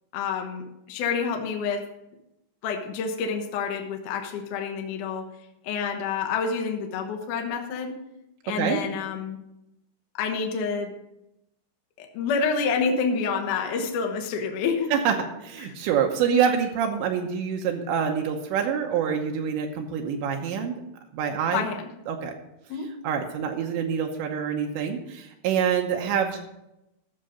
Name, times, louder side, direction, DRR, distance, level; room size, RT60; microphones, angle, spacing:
voice 1, 0.1-1.9 2.6-5.3 5.6-7.9 8.4-9.4 10.1-10.9 12.0-14.9 15.6-15.7 21.5-21.9 22.7-22.9, left 5 dB, 65° left, 3 dB, 2.1 m, -28 dB
voice 2, 15.4-20.7 21.1-21.6 22.1-22.3 23.0-26.4, right 7 dB, 80° right, 2 dB, 3.1 m, -26 dB
13.5 x 6.7 x 5.1 m, 0.88 s
omnidirectional pair, 5.3 m